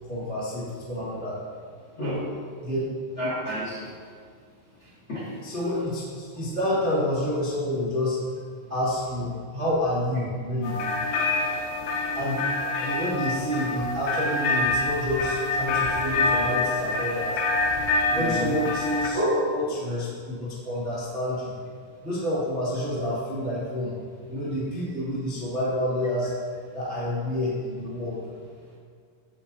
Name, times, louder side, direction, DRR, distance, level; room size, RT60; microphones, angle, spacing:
voice 1, 0.0-1.4 2.6-2.8 5.4-8.2 8.7-10.8 12.1-12.4 12.8-17.4 18.1-19.2 19.5-21.5 22.0-24.0 24.3-26.3 26.7-28.2, left 1 dB, 35° right, -9 dB, 1.0 m, -28 dB
voice 2, 3.2-3.8 5.1-5.2 18.1-18.5 19.1-19.4, equal, 45° left, -8 dB, 1.5 m, -28 dB
sound 1, 10.6-19.1, left 3 dB, 90° left, 3.7 m, -26 dB
16.0 x 9.1 x 2.7 m, 2.1 s
omnidirectional pair, 5.8 m